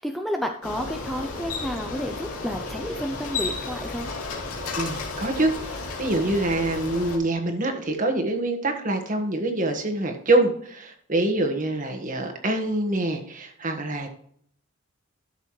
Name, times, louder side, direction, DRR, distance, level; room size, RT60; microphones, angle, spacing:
voice 1, 0.0-4.1, equal, ahead, 3 dB, 0.5 m, -31 dB
Bicycle, 0.6-7.2, left 3 dB, 85° left, 2.7 m, -33 dB
voice 2, 4.7-14.1, right 2 dB, 35° right, 4 dB, 1.5 m, -25 dB
12.5 x 6.6 x 3.2 m, 0.64 s
head